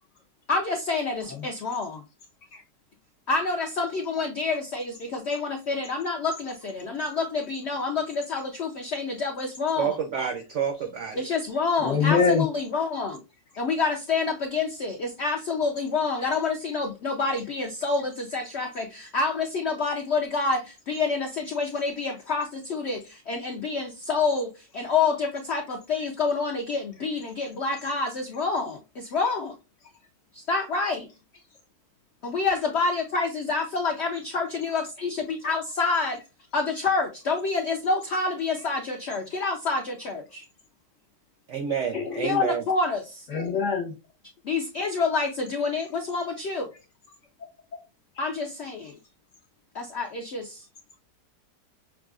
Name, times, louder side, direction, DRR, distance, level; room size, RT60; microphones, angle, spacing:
voice 1, 0.5-2.0 3.3-10.0 11.2-13.2 13.6-29.5 30.3-31.1 32.2-36.2 36.5-40.4 42.2-43.3 44.4-46.7 48.2-49.0 49.7-50.6, left 4 dB, 70° left, 0.6 m, -28 dB
voice 2, 9.8-11.2 41.5-42.6, right 7 dB, 75° right, 0.6 m, -29 dB
voice 3, 11.8-12.4 41.9-42.2 43.3-43.9 48.2-48.3, left 6 dB, 50° left, 1.1 m, -23 dB
6.0 x 2.4 x 2.3 m
omnidirectional pair, 1.9 m